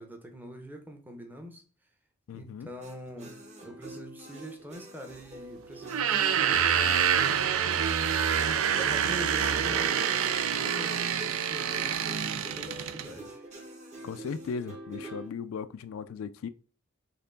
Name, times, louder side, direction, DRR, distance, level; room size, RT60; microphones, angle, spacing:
voice 1, 0.0-1.6 2.3-7.5 8.7-13.5, right 1 dB, 10° right, 0.8 m, -44 dB
voice 2, 2.3-2.7 14.0-16.5, left 6 dB, 70° left, 0.3 m, -37 dB
sound 1, 2.8-15.3, right 1 dB, 35° right, 1.2 m, -46 dB
sound 2, 5.8-13.1, right 8 dB, 75° right, 0.4 m, -27 dB
4.3 x 3.0 x 3.8 m
head